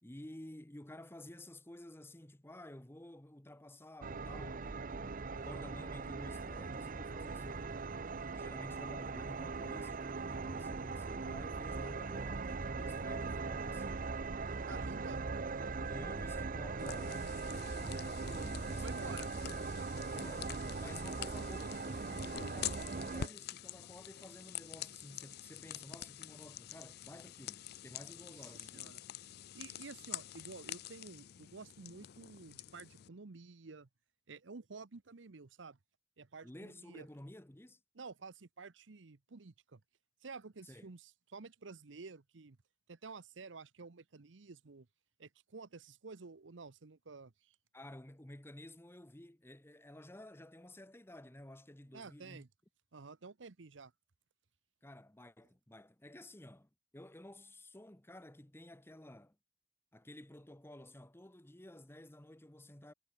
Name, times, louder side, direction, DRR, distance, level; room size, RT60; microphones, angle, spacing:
voice 1, 0.0-7.9 8.3-14.1 14.6-15.2 15.8-19.2 20.1-20.5 20.8-29.0 36.4-37.8 40.6-40.9 47.7-52.4 54.8-59.4 59.9-62.9, left 1 dB, 10° left, 1.1 m, -53 dB
sound 1, 4.0-23.3, right 4 dB, 45° right, 0.7 m, -40 dB
voice 2, 14.7-15.2 18.8-19.3 19.8-20.0 28.4-29.0 29.5-33.9 34.3-35.8 36.2-37.1 37.9-39.8 40.2-42.6 42.9-44.9 45.2-47.6 51.9-52.5 52.9-53.9, right 4 dB, 75° right, 0.8 m, -51 dB
sound 2, 16.8-33.1, left 11 dB, 55° left, 0.4 m, -47 dB
head